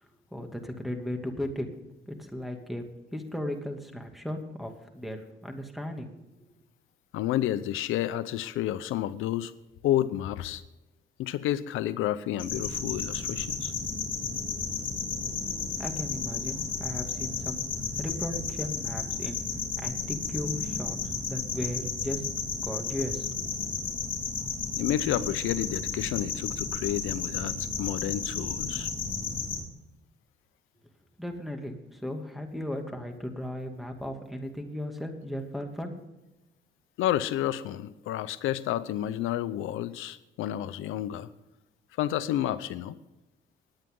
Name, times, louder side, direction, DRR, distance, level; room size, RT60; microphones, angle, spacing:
voice 1, 0.3-1.7 2.1-2.8 3.1-6.1 15.5-17.7 18.0-19.4 19.8-22.2 22.6-23.3 23.6-23.7 31.2-36.0, left 1 dB, ahead, 4 dB, 2.4 m, -36 dB
voice 2, 7.1-9.5 9.8-10.6 11.2-13.7 24.8-28.9 37.0-41.3 42.0-43.0, left 12 dB, 90° left, 14 dB, 0.7 m, -30 dB
sound 1, 12.4-29.6, left 5 dB, 45° left, 3.8 m, -33 dB
20.5 x 9.0 x 3.8 m, 1.0 s
cardioid pair, 90°, 20 cm